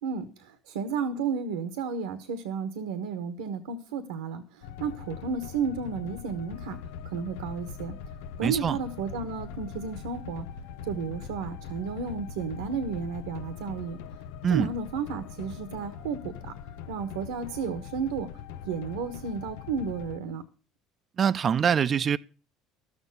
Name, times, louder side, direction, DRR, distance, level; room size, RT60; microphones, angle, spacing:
voice 1, 0.0-6.8 7.0-8.0 8.4-10.5 10.8-14.0 14.5-16.5 16.9-18.3 18.6-20.4, right 5 dB, 85° right, 1.3 m, -32 dB
Countdown (Cinematic Music), 4.6-20.2, left 7 dB, 80° left, 0.6 m, -41 dB
voice 2, 8.4-8.8 14.4-14.7 21.2-22.2, right 7 dB, 40° right, 0.6 m, -24 dB
12.5 x 7.3 x 6.6 m
supercardioid pair, 75°, 0 cm